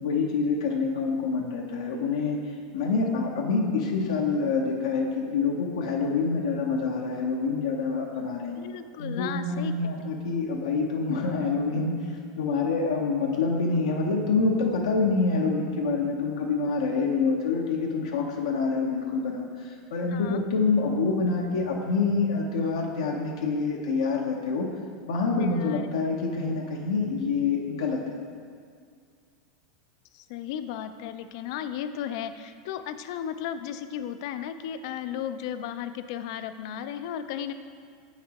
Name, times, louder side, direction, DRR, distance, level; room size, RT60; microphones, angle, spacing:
voice 1, 0.0-2.4 2.7-8.6 9.0-11.9 12.4-24.7 25.1-28.2, left 4 dB, 90° left, -1 dB, 0.7 m, -26 dB
voice 2, 8.6-10.0 20.1-20.4 25.4-25.9 30.1-37.5, left 9 dB, 65° left, 11 dB, 0.4 m, -35 dB
7.3 x 5.8 x 2.9 m, 2.1 s
supercardioid pair, 125°, 3 cm